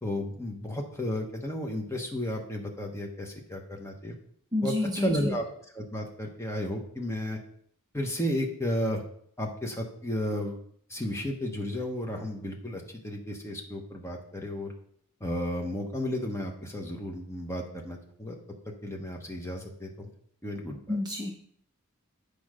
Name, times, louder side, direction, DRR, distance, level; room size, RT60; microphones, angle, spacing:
voice 1, 0.0-4.1 4.6-5.4 5.7-7.4 7.9-9.0 9.4-10.6 10.9-14.7 15.2-18.3 18.8-20.1 20.4-20.8, left 1 dB, 10° left, 1 dB, 1.1 m, -33 dB
voice 2, 4.5-5.4 20.9-21.3, left 2 dB, 20° right, 0 dB, 0.8 m, -29 dB
8.6 x 5.1 x 5.0 m, 0.64 s
head